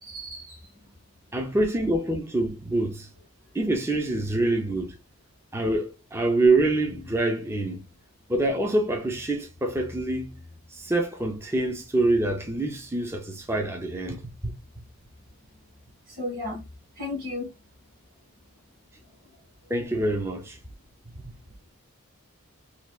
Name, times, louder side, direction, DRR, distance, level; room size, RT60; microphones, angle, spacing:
voice 1, 0.0-0.9 16.1-16.7 16.9-17.5 19.3-19.7, left 2 dB, 40° right, 1.5 m, -35 dB
voice 2, 1.3-3.1 3.5-5.0 5.5-7.8 8.3-10.4 10.7-14.3 19.7-20.6 21.3-21.4, right 2 dB, 10° right, 0.4 m, -26 dB
3.1 x 2.2 x 2.3 m
head